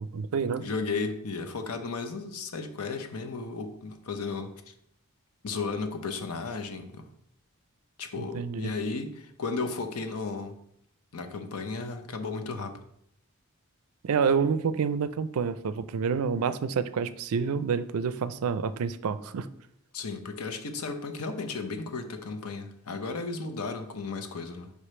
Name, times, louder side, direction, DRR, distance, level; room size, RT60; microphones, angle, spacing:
voice 1, 0.0-0.7 8.2-8.7 14.0-19.5, right 6 dB, 80° right, 14 dB, 0.4 m, -28 dB
voice 2, 0.6-4.7 5.4-7.1 8.0-10.6 11.1-12.8 19.9-24.7, left 4 dB, 85° left, 7 dB, 0.7 m, -34 dB
5.1 x 5.0 x 4.3 m, 0.73 s
head